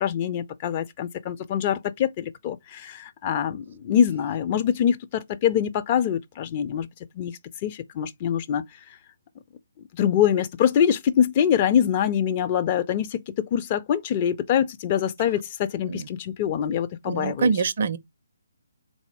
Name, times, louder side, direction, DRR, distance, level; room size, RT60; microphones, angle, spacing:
voice 1, 0.0-6.9 7.2-7.3 7.6-8.6 10.0-17.5, left 9 dB, 30° left, 0.4 m, -24 dB
voice 2, 17.0-18.0, right 5 dB, 45° right, 0.4 m, -24 dB
3.9 x 2.6 x 4.6 m
figure-of-eight pair, 140°, 0 cm